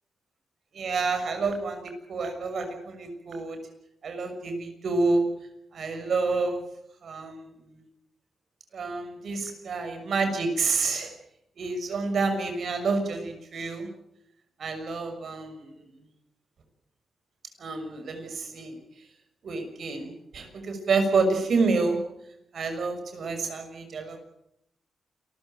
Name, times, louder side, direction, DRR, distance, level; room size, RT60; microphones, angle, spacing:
voice 1, 0.7-1.8 2.1-3.6 4.0-5.2 5.7-6.6 7.0-7.4 7.7-7.8 8.7-11.1 11.6-13.9 14.6-15.7 17.6-18.8 19.4-22.0 22.5-24.2, right 3 dB, 60° right, 6 dB, 6.3 m, -28 dB
28.0 x 14.5 x 9.1 m, 0.82 s
wide cardioid pair, 120°, 0 cm